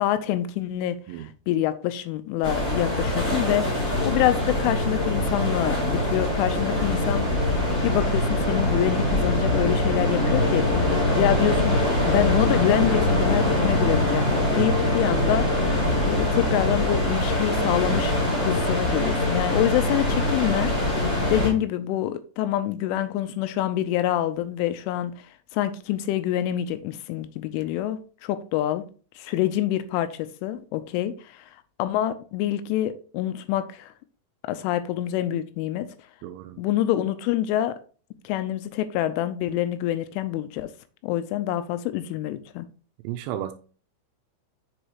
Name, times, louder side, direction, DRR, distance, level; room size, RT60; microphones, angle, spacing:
voice 1, 0.0-3.8 4.0-7.3 7.8-10.7 11.1-18.2 18.4-25.1 25.5-28.8 29.2-31.5 31.8-33.9 34.5-35.9 36.6-37.8 38.2-40.7 41.0-42.7, left 12 dB, 85° left, 3.0 m, -26 dB
sound 1, 2.4-21.5, left 1 dB, 20° left, 2.8 m, -23 dB
voice 2, 36.2-36.6 43.0-43.5, right 12 dB, 80° right, 2.8 m, -33 dB
8.0 x 6.3 x 2.9 m
omnidirectional pair, 5.8 m